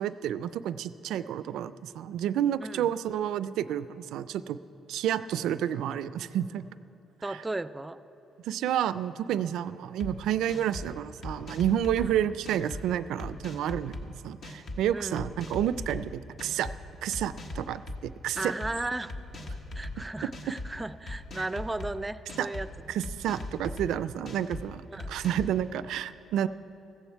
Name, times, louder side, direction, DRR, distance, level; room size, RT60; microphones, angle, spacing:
voice 1, 0.0-4.6 4.9-6.7 7.3-7.4 8.4-16.7 17.0-17.8 18.2-18.5 21.4-21.5 22.4-22.5 22.9-26.5, right 10 dB, 85° right, 15 dB, 0.4 m, -30 dB
voice 2, 7.2-8.0 12.0-12.1 14.9-15.3 18.4-19.2 19.7-22.7 24.9-25.1, right 2 dB, 15° right, 14 dB, 0.4 m, -35 dB
sound 1, 10.0-10.1 10.5-10.9 11.2-12.1 12.4-12.8 13.2-14.0 14.4-14.8 15.2-16.0 16.4-16.7 17.1-18.0 18.4-18.7 19.1-19.9 20.3-20.7 21.1-21.9 22.3-22.7 23.0-23.9 24.3-24.6 25.0-25.5, left 2 dB, 55° left, 1.3 m, -38 dB
15.0 x 14.5 x 4.6 m, 2.9 s
cardioid pair, 90°, 0 cm